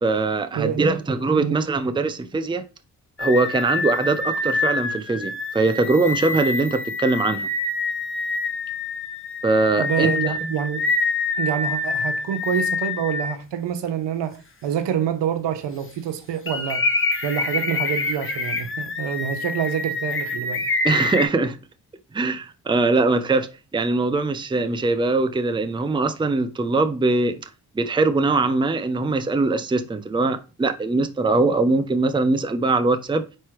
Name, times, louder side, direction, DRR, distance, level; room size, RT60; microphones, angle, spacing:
voice 1, 0.0-2.6 3.2-7.5 9.4-10.3 20.8-21.6 22.1-27.4 27.8-33.3, right 3 dB, 10° right, 0.6 m, -22 dB
voice 2, 0.5-0.9 1.4-1.6 9.8-10.9 11.4-16.8 17.2-20.7, right 9 dB, 70° right, 0.8 m, -26 dB
sound 1, 3.2-13.3 13.9-14.0 16.5-21.3, left 3 dB, 30° left, 1.1 m, -26 dB
4.3 x 3.3 x 3.1 m
hypercardioid pair, 40°, 44 cm